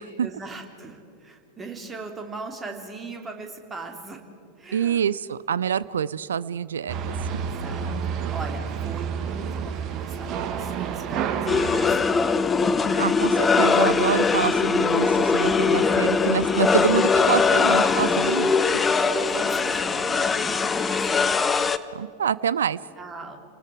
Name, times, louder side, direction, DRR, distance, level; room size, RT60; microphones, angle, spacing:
voice 1, 0.2-4.2 4.6-5.0 7.4-12.4 17.9-18.4 19.1-21.4 23.0-23.4, right 3 dB, 20° right, 4 dB, 3.1 m, -39 dB
voice 2, 4.7-7.1 13.0-18.5 21.9-22.8, right 8 dB, 65° right, 19 dB, 0.5 m, -26 dB
sound 1, 6.9-12.0, right 7 dB, 35° right, 1.6 m, -29 dB
sound 2, 11.5-21.8, left 5 dB, 15° left, 0.9 m, -21 dB
30.0 x 20.0 x 4.8 m, 2.6 s
figure-of-eight pair, 90°, 0 cm